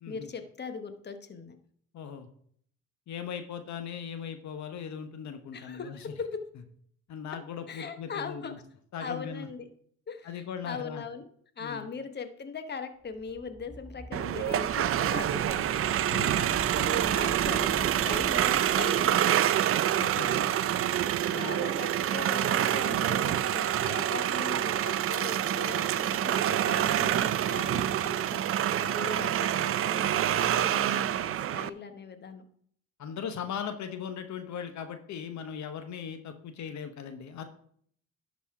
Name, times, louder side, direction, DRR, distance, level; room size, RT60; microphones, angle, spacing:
voice 1, 0.1-1.6 5.5-6.4 7.7-8.5 9.0-9.7 10.1-11.3 11.6-15.8 16.4-16.5 16.8-19.6 21.3-28.4 28.9-32.4, left 5 dB, 35° left, 8 dB, 1.0 m, -40 dB
voice 2, 1.9-2.3 3.1-6.0 7.1-8.6 8.9-9.5 10.2-11.0 11.6-11.9 16.1-16.4 20.0-20.5 21.2-21.6 28.8-29.0 33.0-37.4, left 7 dB, 65° left, 8 dB, 0.9 m, -39 dB
sound 1, 13.1-19.6, right 1 dB, 10° right, 0.7 m, -43 dB
sound 2, 14.1-31.7, right 11 dB, 50° right, 0.4 m, -27 dB
11.5 x 4.2 x 4.7 m, 0.63 s
cardioid pair, 90°, 30 cm